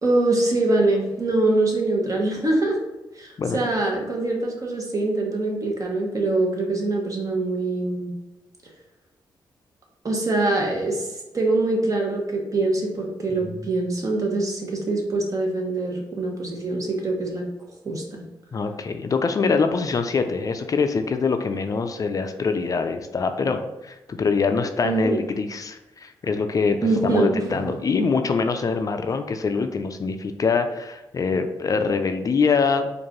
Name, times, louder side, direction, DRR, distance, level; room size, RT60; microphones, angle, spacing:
voice 1, 0.0-2.8 3.2-8.1 10.0-11.1 11.3-17.4 17.8-18.2 24.8-25.2 26.8-28.1, right 2 dB, 40° right, 0 dB, 1.1 m, -24 dB
voice 2, 18.5-32.9, left 5 dB, 45° left, 7 dB, 0.4 m, -24 dB
4.5 x 2.5 x 3.0 m, 1.0 s
cardioid pair, 75°, 9 cm